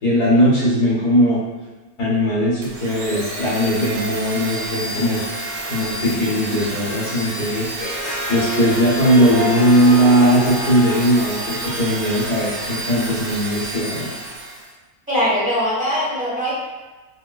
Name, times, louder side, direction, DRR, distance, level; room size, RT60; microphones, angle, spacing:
voice 1, 0.0-1.4 2.0-5.2 5.6-7.7 8.3-14.1, equal, 70° left, -8 dB, 1.6 m, -18 dB
Domestic sounds home sounds, 2.6-14.7, right 2 dB, 65° right, 1.0 m, -30 dB
Harp, 7.6-13.1, equal, 35° right, 1.4 m, -28 dB
voice 2, 15.1-16.5, equal, 5° right, -10 dB, 0.9 m, -21 dB
4.4 x 2.1 x 2.3 m, 1.2 s
omnidirectional pair, 1.8 m